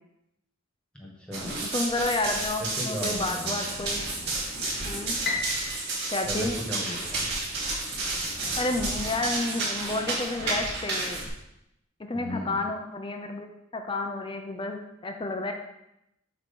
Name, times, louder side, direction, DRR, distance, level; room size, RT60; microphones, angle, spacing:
voice 1, 0.9-1.5 2.8-3.6 6.2-7.2 12.1-12.6, left 1 dB, 5° left, -3 dB, 1.6 m, -36 dB
Run, 1.3-11.3, right 2 dB, 55° right, 2.2 m, -31 dB
voice 2, 1.6-4.0 4.8-5.2 6.1-6.5 8.6-11.2 12.0-13.5 13.7-15.5, left 2 dB, 25° left, 5 dB, 0.6 m, -30 dB
Piano, 5.2-7.5, left 3 dB, 50° left, 0.9 m, -35 dB
8.5 x 3.1 x 5.3 m, 0.84 s
head